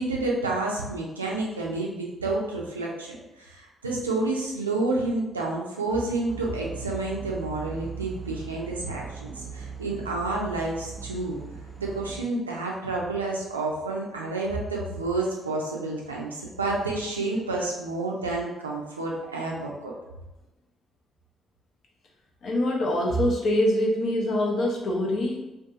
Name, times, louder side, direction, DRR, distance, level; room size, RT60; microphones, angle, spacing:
voice 1, 0.0-11.4 11.8-19.9, right 2 dB, 90° right, -3 dB, 0.3 m, -29 dB
sound 1, 6.3-12.3, right 6 dB, 15° right, 0.6 m, -39 dB
voice 2, 22.4-25.4, left 1 dB, 55° left, -1 dB, 0.6 m, -24 dB
2.6 x 2.4 x 2.4 m, 1.0 s
figure-of-eight pair, 45°, 0 cm